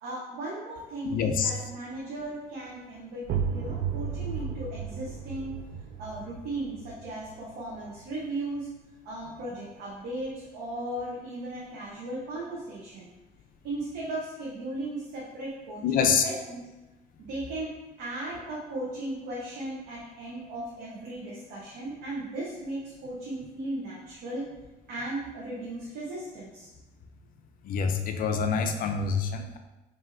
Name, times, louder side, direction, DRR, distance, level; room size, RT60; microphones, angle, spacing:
voice 1, 0.0-5.6 6.0-8.7 9.0-13.1 13.6-16.6 17.2-17.7 18.0-24.5 24.9-26.7, right 1 dB, 80° right, -5 dB, 0.9 m, -36 dB
voice 2, 1.0-1.5 15.8-16.3 27.6-29.6, left 6 dB, 55° left, 6 dB, 0.5 m, -26 dB
sound 1, 3.2-8.8, right 6 dB, 60° right, 0.4 m, -35 dB
5.5 x 2.7 x 2.5 m, 1.1 s
cardioid pair, 110°, 17 cm